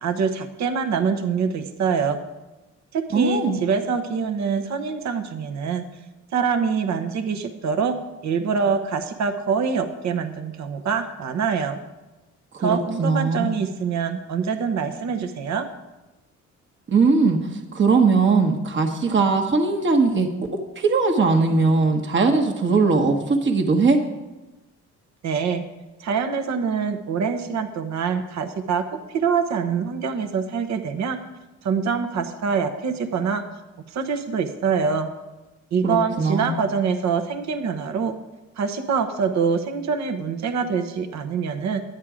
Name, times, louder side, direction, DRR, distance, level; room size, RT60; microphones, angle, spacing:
voice 1, 0.0-2.2 2.9-5.8 6.3-8.0 8.2-11.8 12.6-15.7 25.2-25.6 26.0-31.2 31.6-33.4 33.9-35.1 35.7-38.1 38.6-41.8, right 6 dB, 65° right, 7 dB, 1.0 m, -25 dB
voice 2, 3.1-3.6 12.5-13.6 16.9-20.3 20.8-24.0 35.8-36.5, right 4 dB, 40° right, 3 dB, 1.3 m, -20 dB
11.0 x 9.2 x 4.9 m, 1.1 s
cardioid pair, 90°, 30 cm